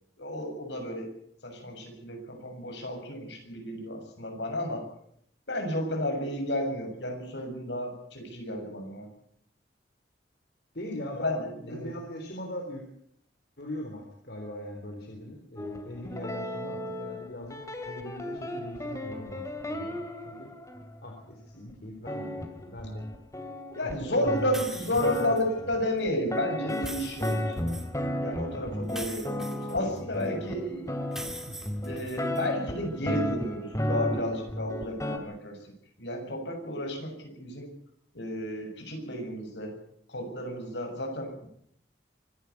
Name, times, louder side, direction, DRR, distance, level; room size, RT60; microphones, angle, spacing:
voice 1, 0.2-1.1 1.4-4.9 5.5-9.1 11.2-11.9 23.7-27.7 28.2-31.3 31.8-35.6 36.0-37.7 38.1-39.7 40.1-41.5, left 1 dB, 80° left, 4 dB, 7.1 m, -32 dB
voice 2, 10.7-12.8 13.6-17.6 17.8-19.4 19.7-20.0 20.2-20.5 21.0-23.0 24.0-24.4 24.9-25.4 29.6-30.5 31.5-31.6, left 1 dB, 60° left, 2 dB, 3.9 m, -40 dB
sound 1, 15.6-21.1 21.7-21.8 22.1-35.2, left 1 dB, 20° left, 2.5 m, -34 dB
sound 2, 24.5-25.4 26.7-27.9 28.9-30.3 31.1-32.4, right 1 dB, 5° right, 2.4 m, -42 dB
25.0 x 12.0 x 9.7 m, 0.70 s
head